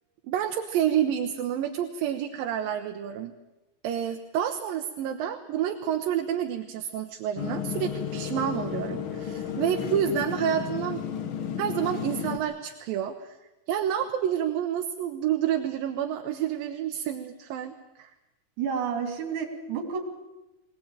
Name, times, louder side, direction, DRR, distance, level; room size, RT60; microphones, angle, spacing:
voice 1, 0.3-3.3 3.8-11.0 11.6-13.4 13.7-18.1, right 10 dB, 80° right, 6 dB, 2.7 m, -29 dB
sound 1, 7.4-12.4, left 8 dB, 70° left, 1.2 m, -33 dB
voice 2, 18.6-20.0, right 6 dB, 60° right, 4 dB, 4.3 m, -30 dB
22.0 x 18.5 x 9.0 m, 1.0 s
omnidirectional pair, 4.1 m